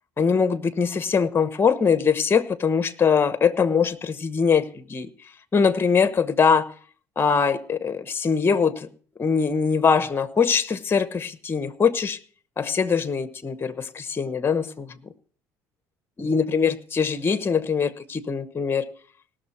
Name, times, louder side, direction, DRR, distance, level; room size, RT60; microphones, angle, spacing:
voice 1, 0.2-5.1 5.5-6.7 7.2-8.9 9.2-12.2 12.6-15.1 16.2-18.9, left 6 dB, 30° left, 1.1 m, -22 dB
19.0 x 6.5 x 4.4 m
supercardioid pair, 80°, 8 cm